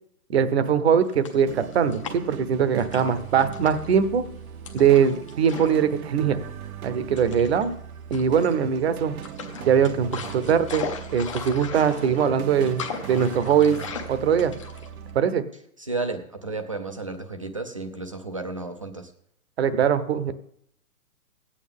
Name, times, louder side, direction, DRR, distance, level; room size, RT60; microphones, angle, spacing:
voice 1, 0.3-4.2 4.7-6.4 6.8-7.7 8.1-9.2 9.7-13.8 14.1-14.5 15.1-15.4 19.6-20.3, right 7 dB, 45° right, 13 dB, 0.8 m, -21 dB
sound 1, 1.0-2.4 2.8-4.0 4.6-5.9 6.1-6.3 7.2-7.6 8.1-8.8 9.2-15.1, left 5 dB, 25° left, 0.6 m, -37 dB
sound 2, 1.5-15.2, right 9 dB, 75° right, 0.8 m, -39 dB
voice 2, 15.8-19.1, right 3 dB, 25° right, 7 dB, 0.4 m, -32 dB
15.5 x 8.7 x 3.6 m, 0.71 s
hypercardioid pair, 165°, 43 cm